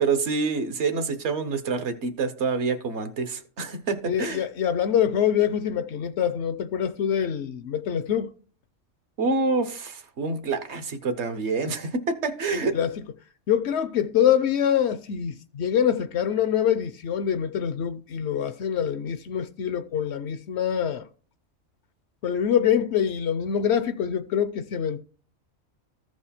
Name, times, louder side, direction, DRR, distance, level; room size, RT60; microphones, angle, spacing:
voice 1, 0.0-4.4 9.2-12.8, right 4 dB, 65° right, 1.2 m, -27 dB
voice 2, 4.1-8.3 12.7-12.9 13.5-21.1 22.2-25.0, left 9 dB, 65° left, 0.8 m, -25 dB
14.0 x 4.8 x 4.3 m
omnidirectional pair, 1.3 m